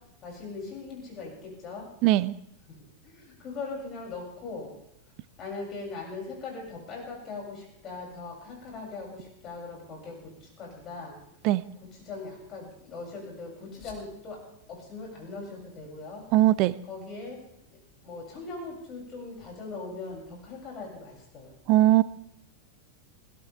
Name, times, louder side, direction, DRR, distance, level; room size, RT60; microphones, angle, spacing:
voice 1, 0.2-1.9 3.1-4.7 5.4-10.2 10.6-11.1 12.1-14.4 14.7-16.2 16.9-17.4 18.0-21.5, left 3 dB, 30° left, -1 dB, 7.5 m, -40 dB
voice 2, 2.0-2.3 11.4-11.6 16.3-16.7 21.7-22.0, right 15 dB, 40° right, 19 dB, 0.7 m, -20 dB
21.0 x 17.0 x 3.7 m, 0.77 s
figure-of-eight pair, 90°, 0 cm